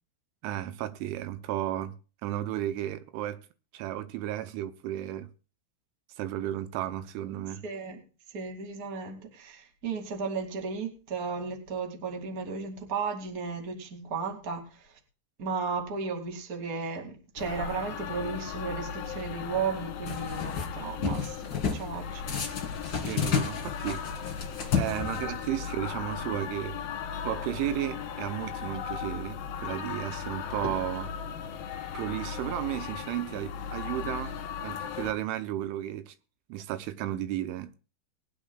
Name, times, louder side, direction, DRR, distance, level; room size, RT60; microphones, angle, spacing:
voice 1, 0.4-1.9 2.2-3.4 3.7-5.3 6.2-7.6 23.0-24.3 24.7-26.8 27.2-31.1 31.9-34.3 34.6-36.1 36.5-37.8, right 13 dB, 85° right, 3.2 m, -33 dB
voice 2, 7.6-8.0 8.3-15.0 15.4-22.2, right 5 dB, 35° right, 1.5 m, -35 dB
sound 1, 17.4-35.1, left 7 dB, 65° left, 2.7 m, -37 dB
sound 2, 20.1-20.7 21.0-21.9 22.3-25.5, left 6 dB, 30° left, 3.0 m, -31 dB
sound 3, 27.3-32.4, left 1 dB, 5° right, 7.0 m, -50 dB
21.0 x 10.0 x 2.3 m
omnidirectional pair, 5.4 m